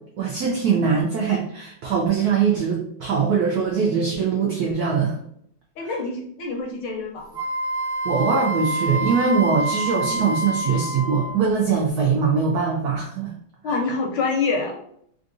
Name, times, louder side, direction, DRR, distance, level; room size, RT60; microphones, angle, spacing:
voice 1, 0.2-5.2 5.8-5.9 8.0-13.3 13.7-13.8, right 5 dB, 80° right, -1 dB, 0.8 m, -22 dB
voice 2, 5.8-7.4 13.6-14.8, left 4 dB, 75° left, 0 dB, 1.1 m, -26 dB
Wind instrument woodwind instrument, 7.3-11.5, right 1 dB, 40° right, 1.0 m, -27 dB
3.6 x 2.5 x 2.6 m, 0.68 s
omnidirectional pair, 2.2 m